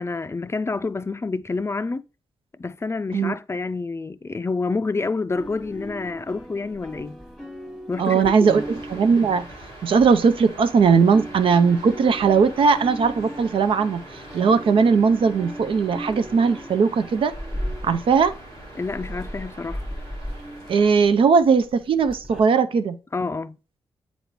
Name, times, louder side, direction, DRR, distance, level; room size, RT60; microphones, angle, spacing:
voice 1, 0.0-2.0 2.6-7.2 7.9-8.6 18.7-19.8 23.1-23.6, left 3 dB, 30° left, 0.4 m, -28 dB
sound 1, 5.4-10.7 11.0-22.4, equal, 5° right, 1.2 m, -38 dB
voice 2, 8.0-9.4 9.8-14.0 14.3-17.3 17.8-18.3 20.7-22.9, right 5 dB, 70° right, 0.5 m, -19 dB
sound 2, 8.4-20.9, right 1 dB, 85° right, 1.8 m, -43 dB
7.9 x 4.0 x 3.0 m
supercardioid pair, 40°, 9 cm